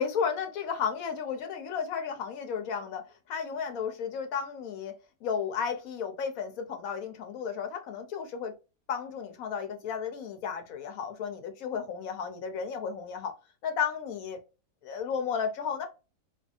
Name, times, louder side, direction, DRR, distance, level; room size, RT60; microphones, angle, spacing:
voice 1, 0.0-4.9 5.2-8.6 8.9-13.3 13.6-14.4 14.8-15.9, left 6 dB, 65° left, 1.0 m, -33 dB
2.8 x 2.6 x 2.4 m
omnidirectional pair, 1.8 m